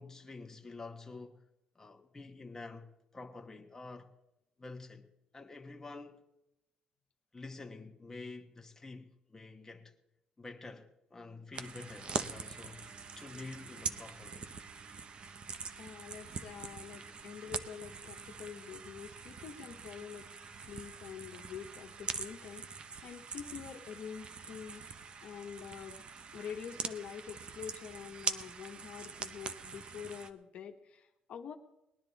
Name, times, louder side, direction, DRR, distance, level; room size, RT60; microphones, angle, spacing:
voice 1, 0.0-1.4 1.7-4.1 4.6-5.1 5.3-6.2 7.3-9.9 10.4-14.5, left 3 dB, 20° left, 1.3 m, -48 dB
sound 1, 11.5-30.3, right 5 dB, 45° right, 0.8 m, -43 dB
voice 2, 15.8-20.3 20.6-24.8 25.2-26.0 26.3-31.5, left 7 dB, 65° left, 1.1 m, -46 dB
19.5 x 10.5 x 4.1 m
cardioid pair, 85°, 2 cm